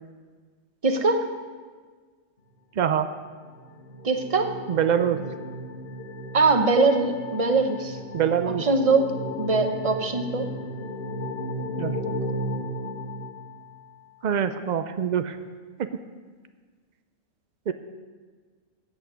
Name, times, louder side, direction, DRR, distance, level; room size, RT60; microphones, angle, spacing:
voice 1, 0.8-1.2 4.0-4.5 6.3-8.0 8.5-9.1 9.4-10.5, right 3 dB, 30° right, 6 dB, 0.8 m, -22 dB
voice 2, 2.8-3.1 4.7-5.2 8.1-8.7 11.8-11.9 14.2-15.4 15.8-15.9 17.7-17.8, right 8 dB, 90° right, 10 dB, 0.4 m, -24 dB
sound 1, 3.3-14.0, equal, 50° left, 1.2 m, -35 dB
14.0 x 8.3 x 5.1 m, 1.5 s
omnidirectional pair, 1.4 m